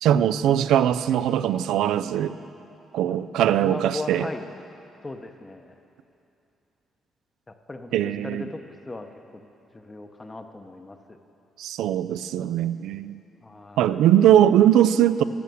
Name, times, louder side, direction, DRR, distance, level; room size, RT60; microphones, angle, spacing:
voice 1, 0.0-2.4 2.9-4.3 7.9-8.4 11.6-13.2 13.8-15.2, right 11 dB, 85° right, 13 dB, 0.3 m, -20 dB
voice 2, 3.6-4.4 5.0-5.8 7.5-9.5 9.7-11.2 13.4-14.0, left 2 dB, 20° left, 7 dB, 0.8 m, -38 dB
12.0 x 7.1 x 7.8 m, 2.8 s
cardioid pair, 90°, 0 cm